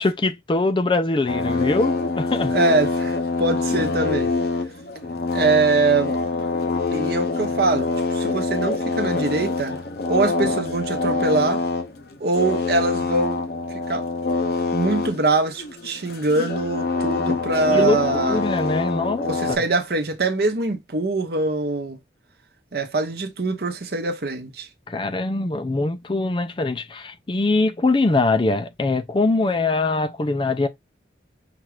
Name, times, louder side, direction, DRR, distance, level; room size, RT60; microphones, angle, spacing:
voice 1, 0.0-2.5 17.7-18.0 18.3-19.6 24.9-30.7, left 2 dB, 25° left, 0.4 m, -22 dB
sound 1, 1.3-19.6, left 3 dB, 60° left, 0.8 m, -25 dB
voice 2, 2.5-4.3 5.3-6.2 6.9-9.8 10.1-11.6 12.2-13.4 13.9-14.0 14.7-18.4 19.2-22.0 22.7-24.7, right 3 dB, 60° right, 0.8 m, -23 dB
5.8 x 2.4 x 3.2 m
head